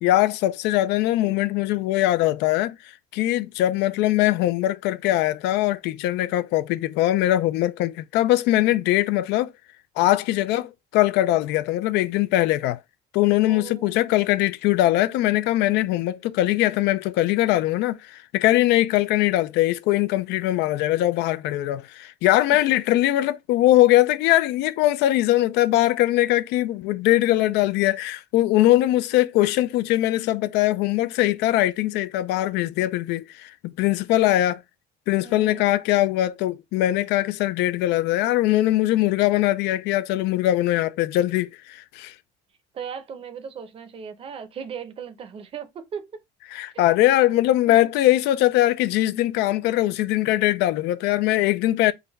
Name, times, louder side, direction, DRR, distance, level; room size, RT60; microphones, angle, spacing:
voice 1, 0.0-2.8 3.1-9.5 10.0-12.8 13.1-34.6 35.1-42.1 46.5-51.9, left 15 dB, 80° left, 0.4 m, -21 dB
voice 2, 13.4-14.0 35.2-35.7 42.7-46.2 46.7-46.9 47.3-47.5, right 7 dB, 35° right, 0.6 m, -38 dB
3.9 x 2.2 x 3.9 m
cardioid pair, 150°, 17 cm